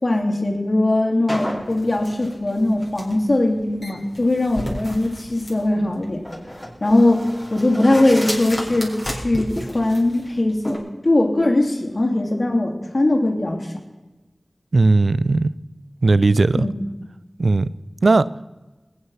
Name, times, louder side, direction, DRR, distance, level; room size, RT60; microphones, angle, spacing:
voice 1, 0.0-6.2 6.8-13.7 16.6-16.7, left 1 dB, 55° left, 3.1 m, -20 dB
sound 1, 1.3-10.8, equal, 15° left, 4.6 m, -32 dB
voice 2, 14.7-15.5 16.0-16.7 17.4-17.7 18.0-18.2, right 3 dB, 85° right, 0.4 m, -16 dB
20.5 x 9.7 x 5.7 m
wide cardioid pair, 45°, 0 cm